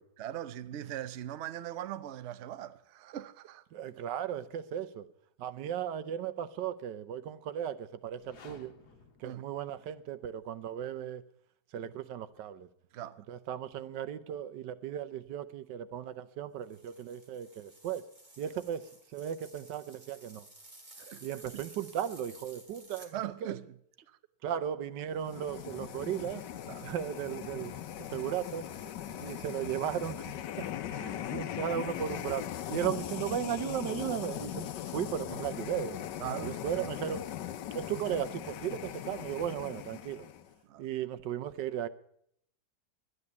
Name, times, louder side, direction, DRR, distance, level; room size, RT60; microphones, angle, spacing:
voice 1, 0.2-3.6 9.2-9.4 12.9-13.2 21.0-21.2 21.5-21.6 23.0-23.6 24.1-24.2 26.7-26.9 29.1-29.2 36.2-37.2 40.6-40.8, right 12 dB, 55° right, 0.8 m, -41 dB
voice 2, 3.7-5.1 5.4-8.7 9.2-11.2 11.7-12.7 13.3-18.0 18.4-20.4 21.2-23.2 23.4-23.5 24.4-26.4 26.8-27.8 28.1-28.7 29.2-30.3 30.6-37.2 37.7-40.3 40.8-41.9, right 10 dB, 90° right, 1.4 m, -36 dB
sound 1, 8.0-10.2, left 5 dB, 70° left, 1.8 m, -56 dB
sound 2, 16.6-23.1 25.3-29.5, right 2 dB, 25° right, 2.5 m, -56 dB
sound 3, 25.1-40.5, left 11 dB, 85° left, 1.4 m, -40 dB
12.0 x 9.8 x 8.1 m
omnidirectional pair, 1.8 m